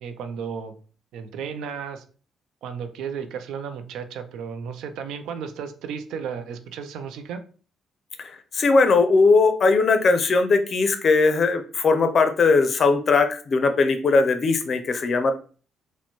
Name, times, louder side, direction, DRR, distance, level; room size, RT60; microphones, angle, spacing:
voice 1, 0.0-0.7 1.1-2.0 2.6-7.4, right 6 dB, 85° right, 9 dB, 0.4 m, -34 dB
voice 2, 8.2-15.3, left 4 dB, 50° left, 8 dB, 0.5 m, -19 dB
4.2 x 2.1 x 2.9 m, 0.39 s
cardioid pair, 90°, 0 cm